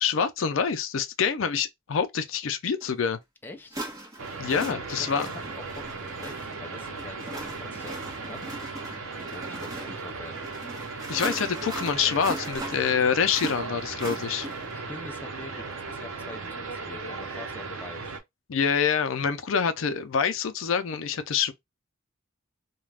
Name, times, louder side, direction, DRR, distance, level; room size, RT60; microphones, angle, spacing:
voice 1, 0.0-3.2 4.4-5.3 11.1-14.5 18.5-21.5, left 6 dB, 70° left, 0.5 m, -26 dB
sound 1, 2.8-2.9 3.7-14.8, right 1 dB, 20° right, 1.0 m, -39 dB
voice 2, 3.4-3.8 4.6-8.0 8.3-8.4 9.3-10.4 14.5-18.2, left 2 dB, 10° left, 0.4 m, -44 dB
sound 2, 4.2-18.2, right 4 dB, 85° right, 0.7 m, -37 dB
2.4 x 2.2 x 3.2 m
head